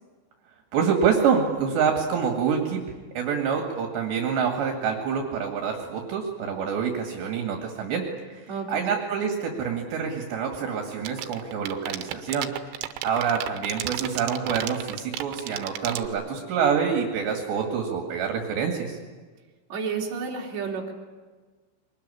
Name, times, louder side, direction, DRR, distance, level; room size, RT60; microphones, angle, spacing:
voice 1, 0.7-2.9 3.2-8.4 8.7-12.5 12.8-19.0, right 6 dB, 65° right, 2 dB, 4.2 m, -26 dB
voice 2, 8.5-8.8 19.7-20.9, right 5 dB, 40° right, -2 dB, 4.4 m, -31 dB
sound 1, 10.9-16.1, right 13 dB, 90° right, 3.5 m, -32 dB
23.5 x 20.0 x 9.9 m, 1.4 s
omnidirectional pair, 5.5 m